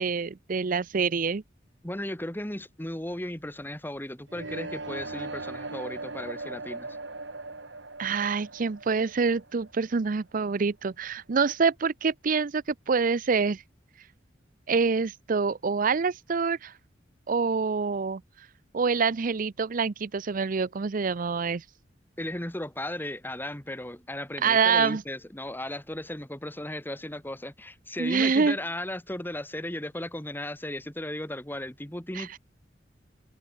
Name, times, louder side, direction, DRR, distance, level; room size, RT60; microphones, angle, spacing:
voice 1, 0.0-1.4 8.0-13.6 14.7-16.7 17.3-18.2 18.7-21.6 24.4-25.0 28.0-28.6 32.1-32.3, right 5 dB, 50° right, 0.5 m, -26 dB
voice 2, 1.8-7.0 22.2-32.4, left 1 dB, 10° left, 2.0 m, -36 dB
sound 1, 4.3-10.2, right 2 dB, 85° right, 5.5 m, -39 dB
head